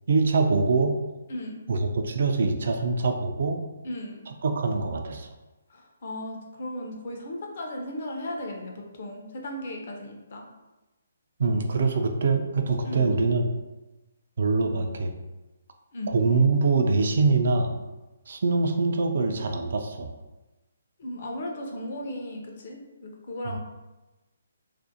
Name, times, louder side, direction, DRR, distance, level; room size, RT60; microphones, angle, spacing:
voice 1, 0.1-1.0 1.7-3.6 4.4-5.3 11.4-13.5 14.4-15.1 16.1-17.8 18.3-20.1, right 4 dB, 65° right, 4 dB, 0.3 m, -24 dB
voice 2, 1.3-1.6 3.8-4.3 5.7-8.7 9.0-10.5 12.8-13.1 15.9-16.1 21.0-23.6, left 1 dB, 55° left, 1 dB, 0.5 m, -36 dB
2.4 x 2.1 x 2.6 m, 1.1 s
hypercardioid pair, 150°, 0 cm